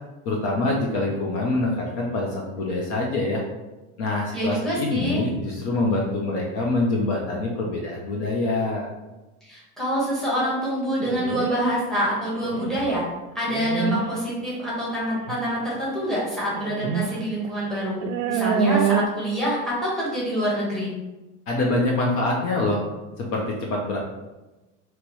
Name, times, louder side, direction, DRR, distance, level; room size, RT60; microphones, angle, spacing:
voice 1, 0.2-3.4 4.0-8.9 21.5-22.8 23.2-24.0, left 2 dB, 45° left, -1 dB, 0.7 m, -25 dB
voice 2, 4.3-5.2 9.4-13.0 13.3-18.0 18.3-20.9, equal, ahead, -7 dB, 1.1 m, -26 dB
sound 1, 11.0-11.7 12.4-12.9 13.5-14.0 15.3-15.4 16.5-17.1 17.4-17.5 18.0-19.1, right 7 dB, 90° right, 0.5 m, -25 dB
5.0 x 3.0 x 3.1 m, 1.1 s
cardioid pair, 175°, 36 cm